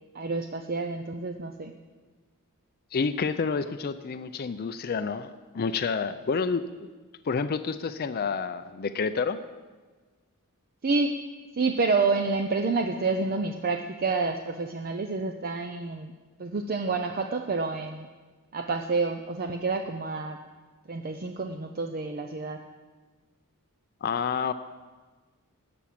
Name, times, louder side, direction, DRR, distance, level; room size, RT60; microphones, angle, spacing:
voice 1, 0.1-1.7 10.8-11.2 11.5-16.1 16.4-18.1 18.5-20.4 20.9-22.6, right 3 dB, 45° right, 5 dB, 0.6 m, -28 dB
voice 2, 2.9-6.9 7.3-9.4 24.0-24.5, left 5 dB, 45° left, 10 dB, 0.4 m, -29 dB
13.0 x 6.1 x 8.5 m, 1.4 s
head